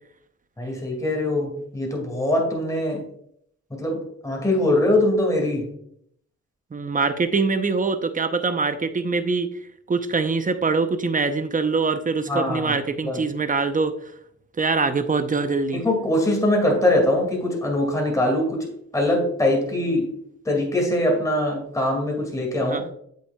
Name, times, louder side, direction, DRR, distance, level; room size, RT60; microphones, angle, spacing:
voice 1, 0.6-3.1 3.7-5.7 12.3-12.8 13.0-13.2 15.7-20.1 20.5-22.8, left 1 dB, 10° left, 0 dB, 2.2 m, -22 dB
voice 2, 6.7-9.5 9.9-14.0 14.6-15.8 22.6-22.8, right 4 dB, 30° right, 10 dB, 0.7 m, -23 dB
7.9 x 6.3 x 2.3 m, 0.70 s
cardioid pair, 75°, 29 cm